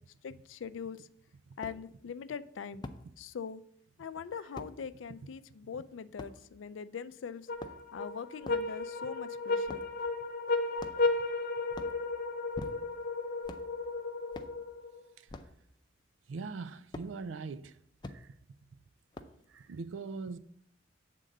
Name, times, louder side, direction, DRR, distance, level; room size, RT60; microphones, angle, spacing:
voice 1, 0.2-1.1 1.6-2.8 3.2-3.6 4.0-7.5 7.9-9.8, left 6 dB, 85° left, 0.4 m, -42 dB
sound 1, 0.6-0.7 1.6-1.8 2.8-3.0 4.6-4.7 6.2-6.4 7.4-8.0 8.4-8.7 9.7-9.9 10.8-11.2 11.7-12.0 12.5-13.0 13.4-13.7 14.3-14.6 15.3-15.6 16.9-17.1 18.0-18.2 19.1-19.5, left 2 dB, 25° left, 0.5 m, -44 dB
sound 2, 7.5-15.0, left 3 dB, 50° left, 0.8 m, -34 dB
voice 2, 16.3-17.8 18.1-18.3 19.5-20.4, right 4 dB, 85° right, 0.4 m, -41 dB
7.6 x 3.7 x 6.6 m
head